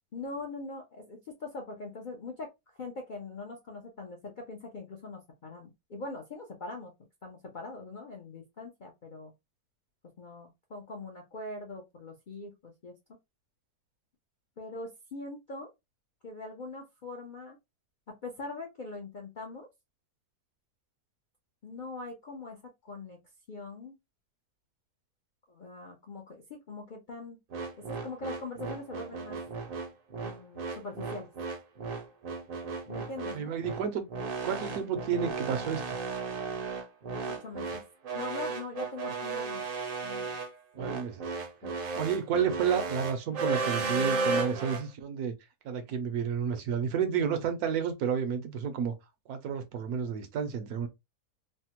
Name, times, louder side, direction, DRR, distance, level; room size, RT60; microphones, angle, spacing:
voice 1, 0.1-6.9 7.2-9.3 10.2-12.9 14.6-15.7 16.2-17.6 18.2-19.7 21.6-23.2 23.5-24.0 25.5-27.4 27.9-29.4 30.2-31.3 32.9-33.5 37.4-37.8 38.1-39.6 40.0-40.4 41.6-41.8, left 3 dB, 60° left, 0.5 m, -42 dB
sound 1, 27.5-44.8, right 4 dB, 50° right, 0.6 m, -34 dB
voice 2, 33.3-34.0 34.4-35.8 40.8-41.3 42.0-45.3 45.6-48.9 49.3-50.9, right 7 dB, 80° right, 1.1 m, -31 dB
3.3 x 2.1 x 2.8 m
omnidirectional pair, 1.6 m